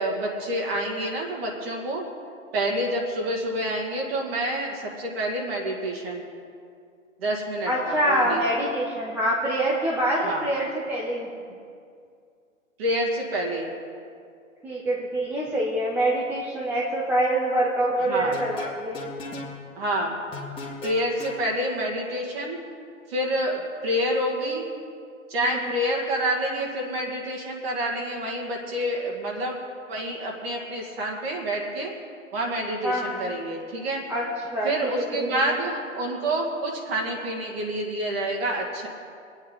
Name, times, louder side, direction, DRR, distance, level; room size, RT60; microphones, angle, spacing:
voice 1, 0.0-2.0 2.5-6.2 7.2-8.4 10.2-10.5 12.8-13.7 18.1-18.4 19.8-20.1 20.8-22.6 23.1-24.7 25.3-29.6 29.9-31.9 32.3-34.0 34.6-38.9, right 1 dB, 50° right, -1 dB, 2.2 m, -28 dB
voice 2, 7.6-11.3 14.6-19.0 25.4-25.8 32.8-33.4 34.1-35.6, right 1 dB, 5° right, -4 dB, 0.7 m, -26 dB
sound 1, 18.2-19.5 20.3-21.4, left 3 dB, 15° left, 1.7 m, -36 dB
20.5 x 9.0 x 3.8 m, 2.3 s
hypercardioid pair, 145°, 40 cm